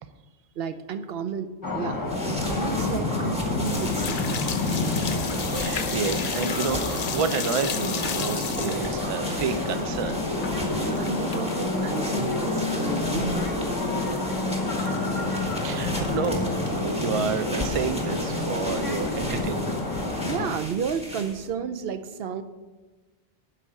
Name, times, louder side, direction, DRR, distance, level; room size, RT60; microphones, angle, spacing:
voice 1, 0.6-4.6 10.7-14.1 20.2-22.4, right 6 dB, 70° right, 10 dB, 0.8 m, -32 dB
sound 1, 1.6-20.5, left 2 dB, 20° left, 1.2 m, -28 dB
sound 2, 1.9-21.5, equal, 5° right, 1.5 m, -37 dB
sound 3, 3.6-11.6 11.9-12.7 13.0-13.1 13.6-13.7 13.8-14.1 14.9-15.4 15.8-16.4, left 7 dB, 55° left, 0.8 m, -35 dB
voice 2, 5.2-10.2 14.8-16.5 16.7-19.8, right 6 dB, 40° right, 10 dB, 0.5 m, -30 dB
12.0 x 4.2 x 7.3 m, 1.2 s
omnidirectional pair, 1.0 m